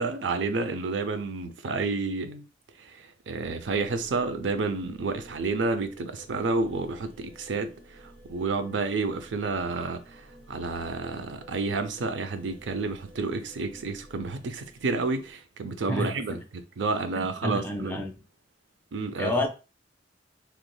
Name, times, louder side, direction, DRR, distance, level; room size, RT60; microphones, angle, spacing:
voice 1, 0.0-2.5 2.8-18.0 18.9-19.3, right 3 dB, 85° right, 0.5 m, -30 dB
sound 1, 3.3-15.3, right 1 dB, 40° right, 0.9 m, -52 dB
voice 2, 15.9-16.4 17.2-18.1 19.2-19.5, left 1 dB, 10° left, 0.4 m, -30 dB
3.2 x 3.0 x 2.2 m
head